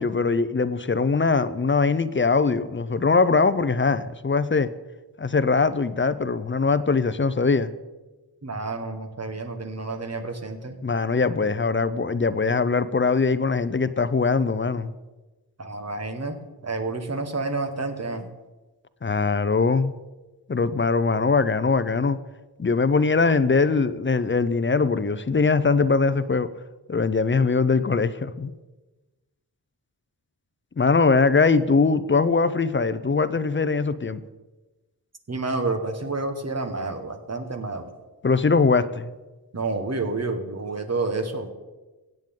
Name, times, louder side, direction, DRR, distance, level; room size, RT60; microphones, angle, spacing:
voice 1, 0.0-4.7 5.2-7.7 10.8-14.9 19.0-19.9 20.5-22.2 22.6-26.5 26.9-28.5 30.8-34.2 38.2-39.1, left 4 dB, 30° left, 13 dB, 0.5 m, -21 dB
voice 2, 8.4-10.8 15.6-18.3 35.3-37.9 39.5-41.5, right 3 dB, 40° right, 5 dB, 1.5 m, -29 dB
16.5 x 9.1 x 3.7 m, 1.2 s
wide cardioid pair, 70°, 40 cm